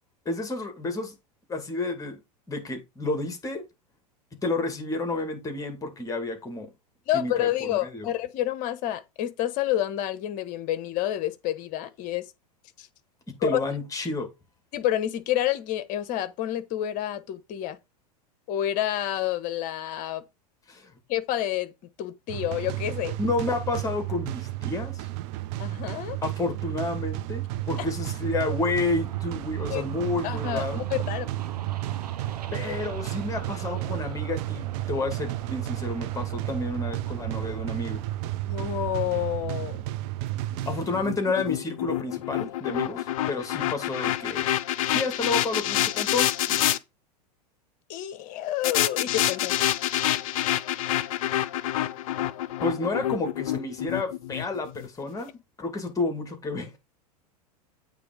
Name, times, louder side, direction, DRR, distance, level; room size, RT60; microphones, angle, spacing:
voice 1, 0.3-1.1 1.5-2.2 2.5-3.6 4.4-6.7 7.1-8.1 13.3-14.3 20.7-20.9 23.2-25.1 26.2-30.8 32.5-38.0 40.7-44.5 44.9-46.6 52.6-55.3 55.6-56.7, left 3 dB, 15° left, 2.3 m, -30 dB
voice 2, 7.1-12.3 12.8-12.9 13.4-13.6 14.7-17.8 18.5-20.2 21.1-21.7 22.0-23.1 25.6-26.2 27.8-27.9 29.7-29.8 30.2-31.2 38.5-39.8 47.9-49.5, left 12 dB, 40° left, 1.1 m, -29 dB
sound 1, 22.3-41.3, right 16 dB, 40° right, 0.5 m, -32 dB
sound 2, 27.4-39.5, right 10 dB, 70° right, 0.9 m, -41 dB
sound 3, 40.6-46.8 48.6-54.9, left 13 dB, 55° left, 0.6 m, -27 dB
8.3 x 3.5 x 5.1 m
figure-of-eight pair, 90°, 21 cm